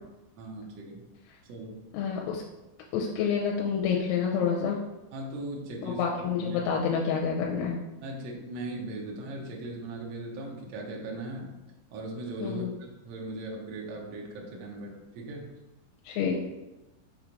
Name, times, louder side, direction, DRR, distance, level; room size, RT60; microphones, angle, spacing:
voice 1, 0.4-1.1 1.4-1.8 5.1-6.0 6.4-6.7 8.0-11.6 11.9-15.5, right 2 dB, 80° right, -1 dB, 1.4 m, -38 dB
voice 2, 1.9-2.4 2.9-4.8 5.8-7.8 12.4-12.7 16.1-16.4, left 6 dB, 85° left, -1 dB, 2.7 m, -28 dB
6.4 x 3.0 x 5.1 m, 1.0 s
omnidirectional pair, 4.5 m